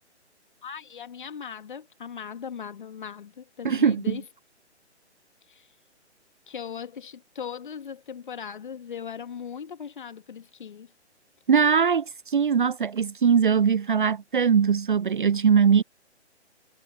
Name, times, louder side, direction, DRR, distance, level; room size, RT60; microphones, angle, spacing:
voice 1, 0.6-4.2 5.5-5.7 6.5-10.9, left 7 dB, 45° left, 1.7 m, -39 dB
voice 2, 3.6-4.2 11.5-15.8, right 6 dB, 45° right, 0.5 m, -21 dB
figure-of-eight pair, 135°, 35 cm